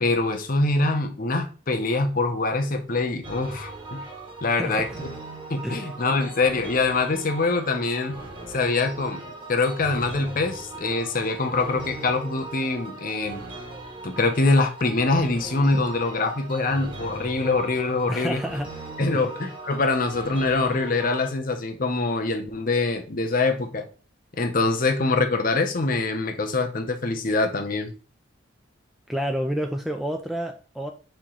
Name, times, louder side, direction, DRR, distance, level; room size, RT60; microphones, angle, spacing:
voice 1, 0.0-4.0 4.4-5.1 5.5-8.2 8.5-9.2 9.5-13.4 14.0-18.4 19.0-23.8 24.4-27.9, left 3 dB, 45° left, 0.7 m, -24 dB
sound 1, 3.2-21.3, right 2 dB, 25° right, 1.1 m, -39 dB
voice 2, 18.1-18.7 19.1-19.3 29.1-30.9, equal, ahead, 0.3 m, -29 dB
4.4 x 3.0 x 3.7 m
head